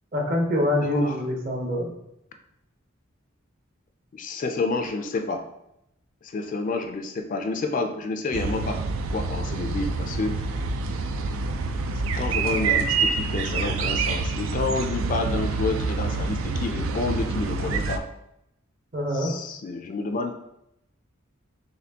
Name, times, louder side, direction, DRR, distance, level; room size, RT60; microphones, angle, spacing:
voice 1, 0.1-1.9 18.9-19.3, left 1 dB, 45° right, 0 dB, 0.8 m, -25 dB
voice 2, 0.8-1.2 4.1-5.4 6.2-8.8 9.1-10.4 11.5-11.8 12.2-18.0 19.1-20.3, left 3 dB, 40° left, 6 dB, 0.4 m, -29 dB
sound 1, 8.3-18.0, right 4 dB, 75° right, 0.3 m, -27 dB
4.1 x 3.4 x 2.8 m, 0.81 s
head